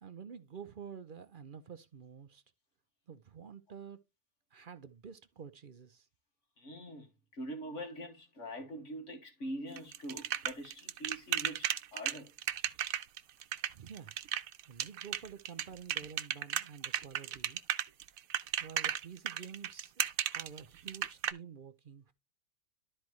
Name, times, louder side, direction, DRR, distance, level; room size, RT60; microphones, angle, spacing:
voice 1, 0.0-2.4 3.1-4.0 4.5-6.1 13.7-14.1 14.7-17.6 18.6-22.1, right 7 dB, 50° right, 0.7 m, -49 dB
voice 2, 6.6-12.3, equal, 60° left, 2.5 m, -44 dB
sound 1, 9.8-21.3, right 11 dB, 85° right, 1.1 m, -34 dB
12.5 x 4.4 x 3.1 m
omnidirectional pair, 1.4 m